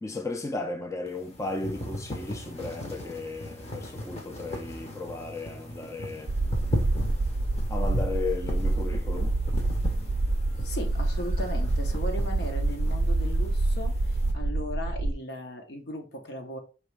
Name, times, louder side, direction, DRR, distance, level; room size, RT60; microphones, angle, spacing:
voice 1, 0.0-6.3 7.7-9.4, left 3 dB, 15° left, 0.4 m, -35 dB
sound 1, 1.1-14.3, left 1 dB, 40° left, 0.9 m, -38 dB
sound 2, 6.3-15.1, right 2 dB, 80° right, 0.5 m, -27 dB
voice 2, 10.6-16.6, left 1 dB, 70° left, 1.0 m, -37 dB
4.6 x 2.9 x 3.3 m
head